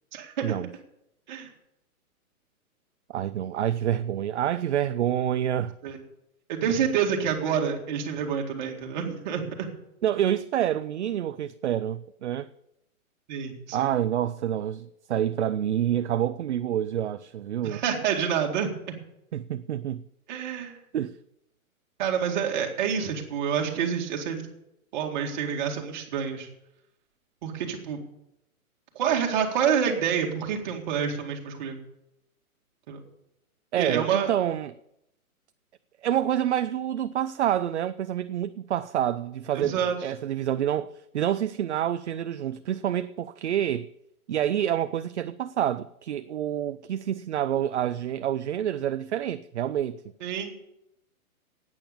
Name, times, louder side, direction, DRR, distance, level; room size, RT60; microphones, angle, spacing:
voice 1, 0.1-0.5 1.3-1.5 5.8-6.0 6.5-9.7 13.3-13.9 17.6-18.7 20.3-20.7 22.0-24.5 24.9-26.5 27.4-28.0 28.9-31.8 32.9-33.0 33.8-34.3 39.5-40.0 50.2-50.5, right 7 dB, 30° right, 2.1 m, -28 dB
voice 2, 3.1-5.7 10.0-12.5 13.7-17.8 19.3-20.0 20.9-21.1 33.7-34.7 36.0-43.9 44.3-50.0, right 10 dB, 55° right, 0.5 m, -27 dB
11.5 x 8.9 x 7.1 m
hypercardioid pair, 165°, 43 cm